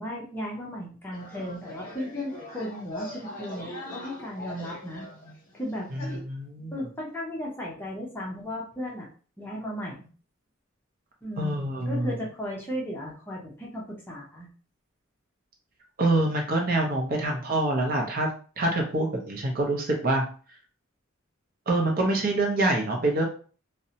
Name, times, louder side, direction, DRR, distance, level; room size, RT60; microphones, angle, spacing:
voice 1, 0.0-5.1 5.5-6.0 6.7-9.1 9.4-10.1 11.2-14.5, left 1 dB, 10° left, -3 dB, 0.5 m, -35 dB
sound 1, 1.1-6.2, left 1 dB, 40° left, 0.8 m, -41 dB
voice 2, 5.9-6.7 11.4-12.1 16.0-18.3 18.6-20.2 21.7-23.2, right 2 dB, 45° right, 1 dB, 0.6 m, -25 dB
2.6 x 2.0 x 2.7 m, 0.40 s
head